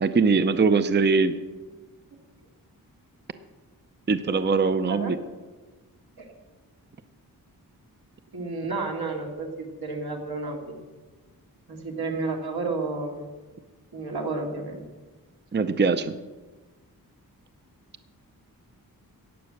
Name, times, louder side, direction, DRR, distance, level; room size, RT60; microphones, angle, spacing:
voice 1, 0.0-1.3 4.1-5.2 15.5-16.1, right 4 dB, 30° right, 11 dB, 0.6 m, -22 dB
voice 2, 8.3-10.8 11.7-13.3 13.9-14.8, right 3 dB, 80° right, 1 dB, 2.7 m, -31 dB
15.0 x 9.4 x 6.5 m, 1.3 s
wide cardioid pair, 130°, 37 cm